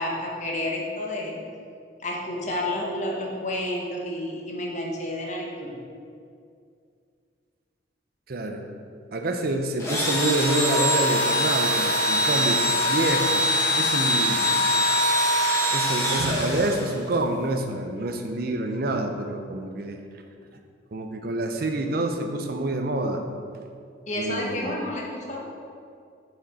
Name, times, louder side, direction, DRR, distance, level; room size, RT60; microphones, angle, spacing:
voice 1, 0.0-1.4 2.0-5.7 24.1-25.4, left 1 dB, 40° left, -1 dB, 0.9 m, -30 dB
voice 2, 8.3-8.6 9.1-14.5 15.7-20.0 20.9-23.2 24.2-24.7, right 1 dB, 50° right, 5 dB, 0.5 m, -27 dB
Engine / Drill, 9.8-17.1, equal, 15° left, 1.1 m, -23 dB
5.8 x 5.1 x 4.1 m, 2.3 s
head